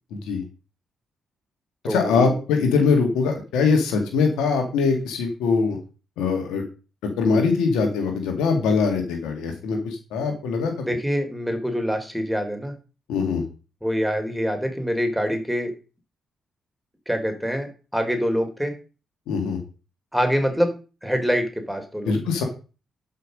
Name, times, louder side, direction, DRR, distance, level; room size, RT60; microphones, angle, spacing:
voice 1, 0.1-0.4 1.8-5.8 6.2-6.6 7.0-10.9 13.1-13.4 19.3-19.6 22.1-22.4, left 5 dB, 80° left, 4 dB, 2.2 m, -22 dB
voice 2, 1.8-2.4 10.8-12.7 13.8-15.7 17.1-18.7 20.1-20.7 21.0-22.2, equal, ahead, 5 dB, 3.9 m, -25 dB
11.5 x 5.8 x 5.3 m, 0.34 s
hypercardioid pair, 45°, 0 cm